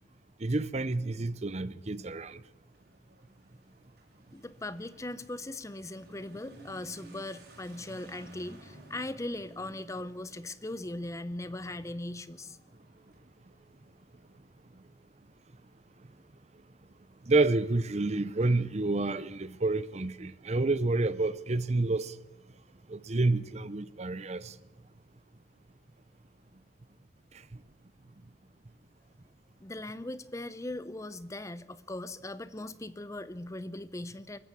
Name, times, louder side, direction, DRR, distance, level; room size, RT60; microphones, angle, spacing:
voice 1, 0.4-2.4 17.3-22.1 22.9-24.5, right 2 dB, 35° right, 0.7 m, -29 dB
Motorcycle / Accelerating revving vroom, 1.9-14.2, right 1 dB, 60° right, 6.2 m, -56 dB
voice 2, 4.3-12.6 29.6-34.4, left 1 dB, 15° left, 0.7 m, -39 dB
24.0 x 14.0 x 8.4 m
head